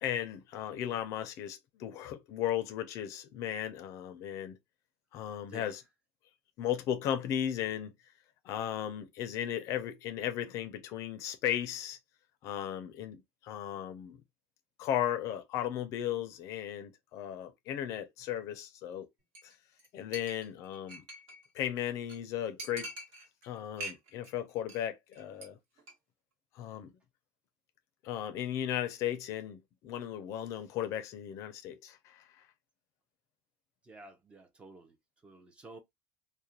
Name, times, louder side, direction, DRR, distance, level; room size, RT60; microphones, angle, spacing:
voice 1, 0.0-4.6 5.1-5.8 6.6-7.9 8.4-12.0 12.4-14.2 14.8-19.1 19.4-19.5 19.9-21.0 21.5-22.9 23.4-25.6 26.6-26.9 28.0-32.3, left 10 dB, 50° left, 0.4 m, -36 dB
voice 2, 5.4-5.8 33.8-35.0 35.2-35.8, right 2 dB, 15° right, 0.5 m, -51 dB
Chink clink, 19.3-19.5 19.8-19.9 20.1-21.5 21.8-21.9 22.1-22.2 22.6-23.5 23.8-24.3 24.6-24.9 25.1-25.5 25.8-25.9, right 1 dB, 65° right, 1.2 m, -44 dB
2.4 x 2.1 x 2.8 m
cardioid pair, 150°, 7 cm